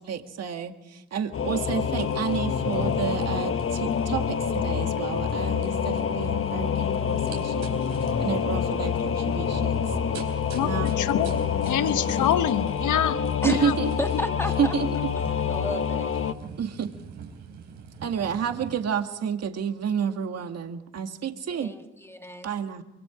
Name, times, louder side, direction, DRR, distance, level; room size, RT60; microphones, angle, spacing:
voice 1, 0.0-7.8 8.2-9.8 10.6-11.0 13.4-13.9 14.6-15.1 16.6-16.9 18.0-21.7 22.4-22.8, right 7 dB, 55° right, 1.9 m, -30 dB
Singing / Musical instrument, 1.3-16.3, left 7 dB, 45° left, 1.1 m, -27 dB
sound 1, 1.9-18.8, right 6 dB, 85° right, 4.4 m, -44 dB
voice 2, 10.5-13.2 13.5-13.7, left 10 dB, 75° left, 1.1 m, -26 dB
voice 3, 14.0-14.8 15.5-16.1 21.6-22.5, left 1 dB, 10° left, 1.7 m, -32 dB
25.5 x 23.5 x 5.0 m
cardioid pair, 90°, 30 cm